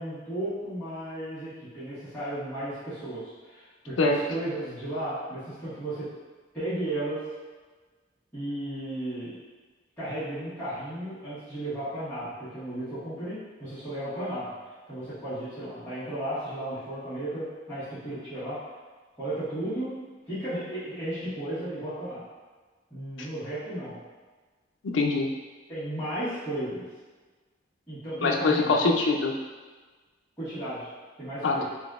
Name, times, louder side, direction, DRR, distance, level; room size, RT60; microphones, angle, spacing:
voice 1, 0.0-6.1 6.5-7.3 8.3-9.3 10.0-14.5 14.9-18.6 19.1-19.9 20.3-22.2 22.9-24.0 25.7-26.8 27.9-28.7 30.4-30.9 31.2-31.7, right 1 dB, 10° left, -17 dB, 1.4 m, -34 dB
voice 2, 24.8-25.3 28.2-29.3 31.4-31.7, left 3 dB, 80° left, 2 dB, 0.4 m, -23 dB
4.0 x 2.6 x 2.4 m, 1.3 s
head